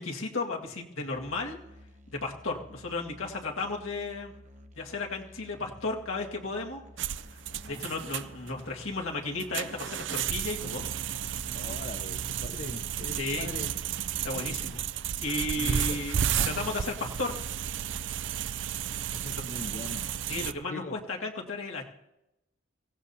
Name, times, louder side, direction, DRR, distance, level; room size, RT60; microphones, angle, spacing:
voice 1, 0.0-1.6 2.1-4.3 4.8-6.8 7.3-7.4 7.6-10.9 13.2-13.5 14.2-14.8 15.2-16.2 16.4-17.3 20.3-21.9, left 3 dB, 90° left, -1 dB, 2.0 m, -34 dB
Musical instrument, 1.1-18.1, left 1 dB, 35° right, 1.0 m, -53 dB
sound 1, 7.0-20.5, right 9 dB, 65° right, 0.5 m, -33 dB
voice 2, 7.5-7.9 11.5-13.7 15.5-16.0 16.2-16.6 19.1-20.1 20.7-20.9, left 2 dB, 40° left, 6 dB, 0.8 m, -41 dB
24.0 x 17.0 x 2.8 m, 0.90 s
head